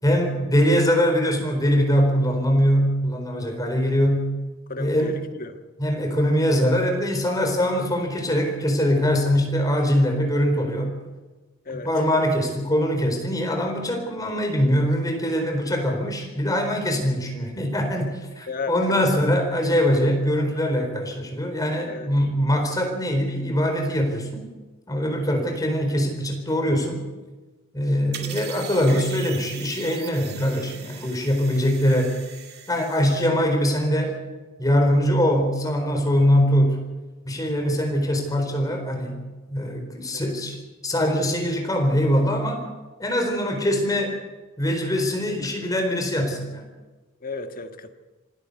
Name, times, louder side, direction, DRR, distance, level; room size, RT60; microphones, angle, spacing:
voice 1, 0.0-4.3 4.8-5.1 5.8-10.9 11.7-24.5 24.9-27.0 27.7-32.1 32.7-34.2 34.6-36.8 37.2-39.2 39.5-40.6 40.8-42.6 43.0-44.2 44.6-46.6, equal, 20° left, 4 dB, 4.3 m, -22 dB
voice 2, 4.7-5.6 11.6-11.9 18.5-19.3 21.9-22.1 33.1-33.3 40.1-40.3 47.2-47.9, left 3 dB, 45° left, 7 dB, 1.7 m, -34 dB
sound 1, 28.1-33.3, right 8 dB, 50° right, 2.5 m, -40 dB
26.0 x 12.5 x 8.4 m, 1.2 s
head